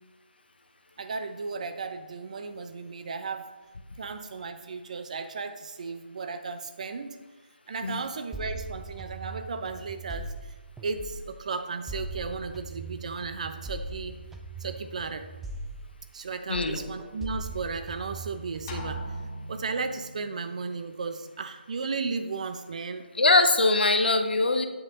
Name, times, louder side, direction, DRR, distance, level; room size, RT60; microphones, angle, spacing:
voice 1, 1.0-3.5 4.0-7.2 7.7-10.5 10.8-14.1 14.6-15.3 16.1-19.0 19.5-23.1, right 4 dB, 40° right, 9 dB, 0.8 m, -35 dB
sound 1, 8.3-11.4 11.9-16.3 16.5-19.0, right 2 dB, 5° right, 0.3 m, -40 dB
sound 2, 18.7-20.5, equal, 20° left, 1.1 m, -38 dB
voice 2, 23.2-24.7, left 2 dB, 65° left, 7 dB, 1.0 m, -22 dB
8.9 x 7.6 x 3.8 m, 1.2 s
figure-of-eight pair, 155°, 6 cm